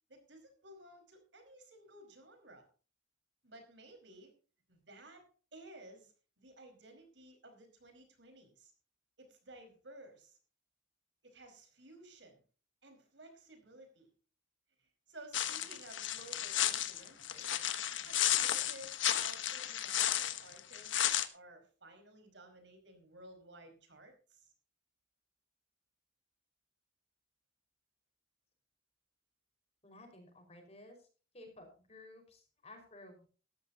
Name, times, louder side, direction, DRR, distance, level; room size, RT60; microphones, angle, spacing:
voice 1, 0.1-2.6 3.4-4.3 4.7-8.7 9.2-10.4 11.2-12.4 12.8-14.1 14.8-17.6 18.0-24.5, right 1 dB, 70° right, 5 dB, 5.0 m, -56 dB
sound 1, 15.3-21.3, left 11 dB, 80° left, 1.3 m, -33 dB
voice 2, 29.8-31.1 31.3-33.3, left 2 dB, 35° left, 4 dB, 5.2 m, -55 dB
17.5 x 13.5 x 2.9 m, 0.39 s
head